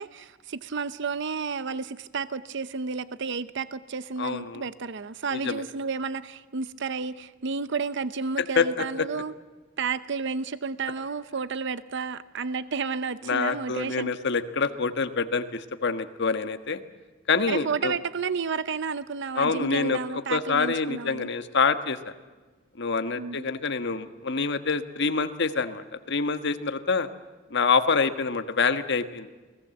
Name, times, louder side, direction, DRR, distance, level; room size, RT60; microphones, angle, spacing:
voice 1, 0.0-9.3 9.8-14.1 17.5-21.3 23.2-23.5, right 5 dB, 65° right, 14 dB, 0.7 m, -31 dB
voice 2, 4.2-4.6 5.3-5.6 8.4-9.1 13.2-16.8 17.3-17.9 19.3-22.1 22.8-27.1 27.5-29.3, left 4 dB, 60° left, 9 dB, 1.5 m, -26 dB
29.0 x 19.5 x 7.8 m, 1.3 s
head